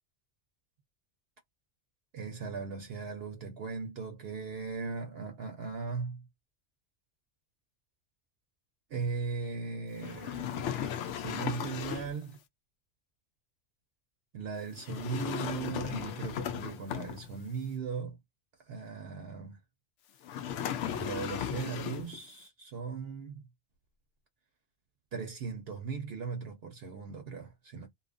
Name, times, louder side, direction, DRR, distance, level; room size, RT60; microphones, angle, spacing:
voice 1, 2.1-6.3 8.9-10.7 11.2-12.4 14.3-18.2 18.7-19.6 21.0-23.4 25.1-27.9, right 5 dB, 65° right, 0.8 m, -38 dB
sound 1, 10.0-12.2 14.8-17.5 20.2-22.2, left 9 dB, 85° left, 0.9 m, -36 dB
2.6 x 2.4 x 2.5 m
omnidirectional pair, 1.2 m